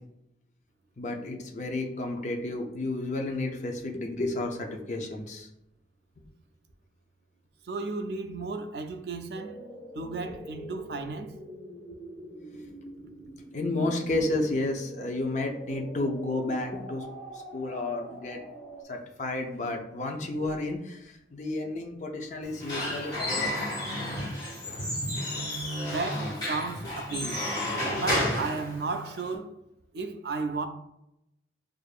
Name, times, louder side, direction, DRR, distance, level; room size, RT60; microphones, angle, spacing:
voice 1, 1.0-5.5 13.5-17.1 17.3-18.4 18.9-23.5, left 2 dB, 40° left, 0.5 m, -31 dB
voice 2, 7.7-9.6 9.9-11.3 25.8-27.4 28.0-29.5 29.9-30.7, right 3 dB, 65° right, 0.4 m, -34 dB
sound 1, 9.3-18.8, right 1 dB, 5° left, 0.9 m, -45 dB
Squeak / Wood, 22.4-29.3, left 1 dB, 20° left, 1.4 m, -31 dB
6.4 x 2.5 x 2.4 m
head